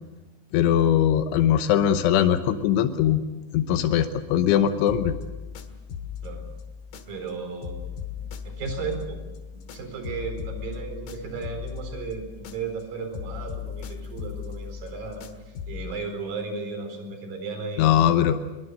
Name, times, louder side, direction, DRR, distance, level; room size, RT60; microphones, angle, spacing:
voice 1, 0.5-3.2 3.5-5.2 17.8-18.4, left 10 dB, 85° left, 8 dB, 3.4 m, -21 dB
sound 1, 4.9-7.4 7.6-12.9 13.1-15.9, left 8 dB, 65° left, 3.1 m, -37 dB
voice 2, 7.1-7.8 8.5-9.2 9.5-18.1, right 4 dB, 50° right, 6 dB, 5.5 m, -35 dB
24.0 x 22.5 x 6.7 m, 1.1 s
omnidirectional pair, 5.4 m